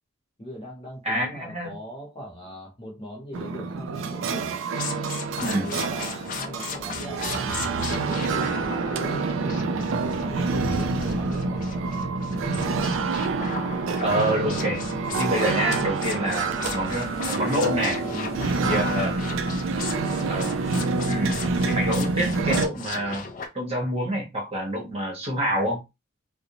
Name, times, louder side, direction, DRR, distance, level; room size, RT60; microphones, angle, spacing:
voice 1, 0.4-4.6 5.4-12.7 16.2-16.4 18.0-18.9, equal, 25° left, 0.9 m, -40 dB
voice 2, 1.0-1.7 5.4-5.7 14.0-14.8 15.1-18.0 18.6-19.1 20.3-20.5 21.1-21.4 21.7-23.3 23.5-25.8, equal, 30° right, 0.8 m, -27 dB
sound 1, 3.3-22.7, right 3 dB, 65° right, 0.3 m, -27 dB
sound 2, 4.7-23.5, left 5 dB, 40° left, 0.4 m, -37 dB
sound 3, 16.9-22.4, left 2 dB, 70° left, 0.9 m, -48 dB
2.5 x 2.0 x 2.8 m
head